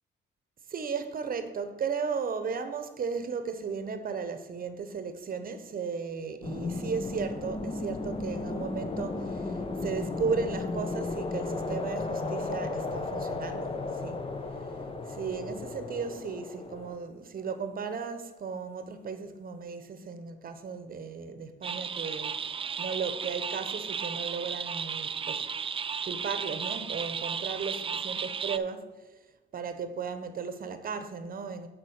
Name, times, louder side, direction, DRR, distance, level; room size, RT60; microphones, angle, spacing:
voice 1, 0.7-14.3 15.1-25.5 26.1-29.1 29.5-31.7, right 5 dB, 45° right, 1.0 m, -35 dB
sound 1, 6.4-17.0, left 3 dB, 25° left, 0.8 m, -34 dB
sound 2, 21.6-28.6, right 6 dB, 30° right, 0.4 m, -34 dB
7.5 x 4.7 x 6.5 m
cardioid pair, 90°, 20 cm